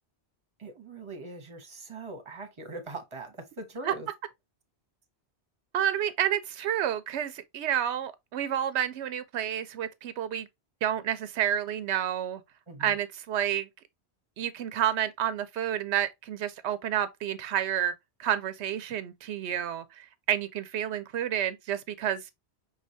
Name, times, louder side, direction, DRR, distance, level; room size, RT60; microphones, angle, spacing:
voice 1, 0.6-4.1 12.7-12.9, right 2 dB, 30° right, 1.0 m, -41 dB
voice 2, 5.7-10.5 10.8-12.4 12.8-13.7 14.4-17.9 18.2-22.3, right 10 dB, 85° right, 0.9 m, -30 dB
5.3 x 3.2 x 2.6 m
omnidirectional pair, 1.1 m